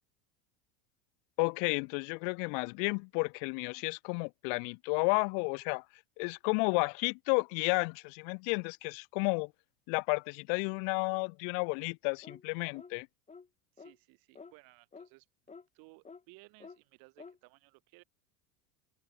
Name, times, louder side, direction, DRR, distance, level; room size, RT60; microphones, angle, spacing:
voice 1, 1.4-5.8 6.2-9.5 9.9-13.1, left 40 dB or more, 60° left, 0.9 m, -32 dB
sound 1, 12.2-12.5 12.7-12.9 13.3-13.5 13.8-14.0 14.4-14.5 14.9-15.1 15.5-15.7 16.1-16.2 16.6-16.8 17.2-17.4, left 5 dB, 15° left, 2.7 m, -50 dB
voice 2, 13.7-15.3 15.7-18.0, right 28 dB, 60° right, 7.8 m, -59 dB
open air
supercardioid pair, 100°, 39 cm